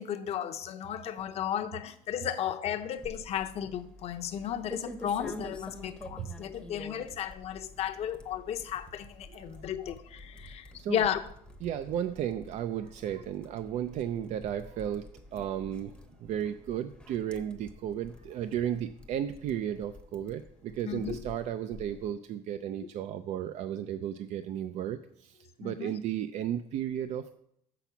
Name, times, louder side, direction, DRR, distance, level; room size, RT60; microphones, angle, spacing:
voice 1, 0.0-11.2 20.9-21.2 25.6-25.9, left 9 dB, 45° left, 0.7 m, -34 dB
sound 1, 3.0-22.1, left 2 dB, 5° left, 0.7 m, -49 dB
voice 2, 9.3-9.6 10.7-11.0 11.6-27.4, right 10 dB, 55° right, 0.4 m, -34 dB
5.9 x 5.8 x 7.0 m
cardioid pair, 125°, 14 cm